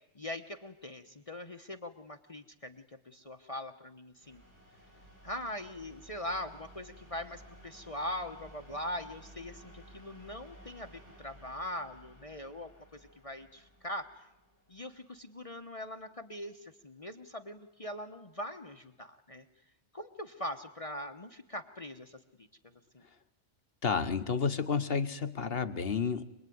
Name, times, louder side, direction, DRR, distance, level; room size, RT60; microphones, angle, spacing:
voice 1, 0.1-4.4 5.2-14.3 14.7-19.5 19.9-22.5 22.9-23.0, left 1 dB, 30° left, 5 dB, 1.2 m, -42 dB
sound 1, 4.2-15.8, right 1 dB, 75° right, 7.6 m, -56 dB
voice 2, 23.8-26.2, left 5 dB, 55° left, 11 dB, 1.4 m, -31 dB
26.5 x 20.5 x 9.5 m, 0.86 s
omnidirectional pair, 1.2 m